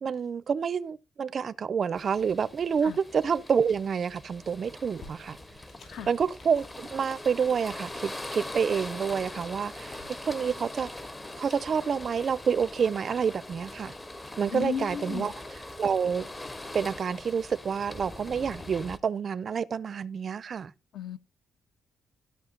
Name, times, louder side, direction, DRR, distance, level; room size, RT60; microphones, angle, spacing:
voice 1, 0.0-5.4 6.1-10.9 11.4-13.9 14.4-15.3 15.8-16.3 16.7-20.7, right 6 dB, 35° right, 0.4 m, -28 dB
sound 1, 1.9-19.0, left 1 dB, 15° left, 0.6 m, -42 dB
sound 2, 4.9-10.1, left 3 dB, 45° left, 5.5 m, -56 dB
voice 2, 14.5-15.3 20.9-21.2, left 8 dB, 65° left, 0.5 m, -34 dB
14.5 x 5.5 x 3.8 m
cardioid pair, 170°, 0 cm